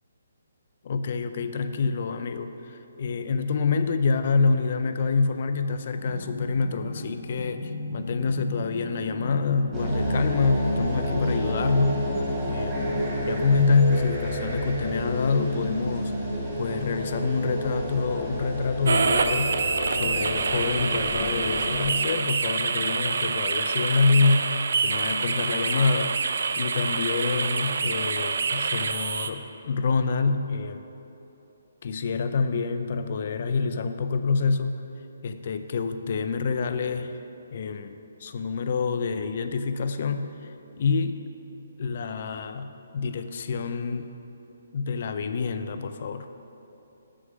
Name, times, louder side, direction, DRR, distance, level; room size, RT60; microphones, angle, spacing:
voice 1, 0.8-12.1 12.5-16.2 16.6-19.6 19.9-26.2 26.6-30.8 31.8-34.8 35.2-37.2 37.5-40.3 40.8-41.2 41.8-44.1 44.7-46.3, left 4 dB, 45° left, 9 dB, 0.4 m, -26 dB
sound 1, 5.9-13.0, left 1 dB, 10° left, 1.5 m, -38 dB
sound 2, 9.7-21.9, equal, 15° right, 1.2 m, -30 dB
sound 3, 18.9-29.3, right 4 dB, 65° right, 0.3 m, -26 dB
6.6 x 3.5 x 6.1 m, 2.9 s
hypercardioid pair, 165°, 0 cm